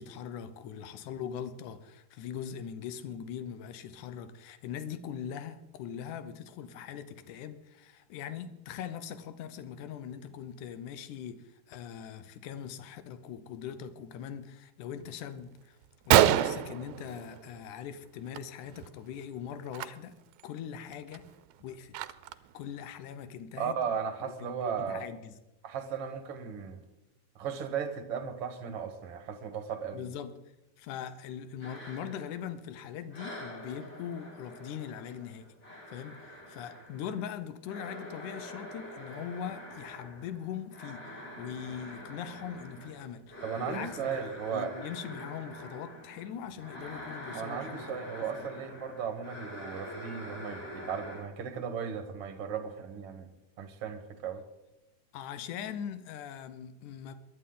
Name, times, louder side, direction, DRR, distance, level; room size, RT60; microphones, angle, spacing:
voice 1, 0.0-15.8 16.0-20.2 20.4-21.3 21.6-22.0 22.5-23.8 24.4-25.4 29.9-30.3 30.8-35.5 35.9-44.2 44.5-48.5 55.1-57.2, left 8 dB, 80° left, 2.4 m, -41 dB
Gunshot gunfire, 15.4-15.5 15.8-15.9 16.1-17.7 18.0-18.4 18.6-18.9 19.7-19.9 20.4-20.5 20.9-22.5, right 12 dB, 80° right, 2.0 m, -26 dB
voice 2, 23.6-25.1 25.6-26.9 27.4-30.1 43.4-44.8 47.3-53.3 53.6-54.4, right 7 dB, 55° right, 2.0 m, -36 dB
sound 1, 31.6-32.8 33.1-51.2, equal, 35° left, 5.8 m, -45 dB
22.5 x 11.5 x 3.8 m
omnidirectional pair, 3.6 m